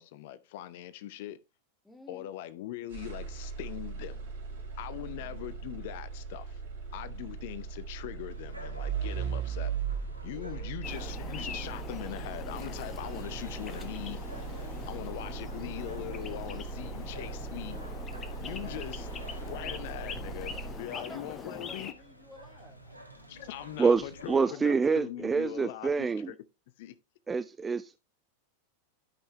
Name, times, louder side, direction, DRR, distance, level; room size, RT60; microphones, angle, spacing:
voice 1, 0.0-1.4 2.1-4.2 4.8-6.6 6.9-9.7 10.2-14.5 14.9-17.8 18.4-19.1 19.5-20.5 20.8-21.9 23.3-26.4 26.8-26.9, left 13 dB, 50° left, 0.5 m, -41 dB
voice 2, 1.8-2.3 5.0-5.4 10.3-10.7 18.4-19.1 19.4-19.8 20.9-23.5 24.5-24.7, left 1 dB, 5° left, 1.6 m, -52 dB
sound 1, 2.9-21.2, right 6 dB, 60° right, 3.5 m, -39 dB
sound 2, 8.3-24.4, equal, 90° left, 1.3 m, -51 dB
sound 3, 10.8-21.9, left 6 dB, 25° left, 1.0 m, -43 dB
voice 3, 23.8-26.3 27.3-28.0, right 5 dB, 15° right, 0.4 m, -27 dB
12.5 x 5.5 x 2.7 m
figure-of-eight pair, 90°, 0 cm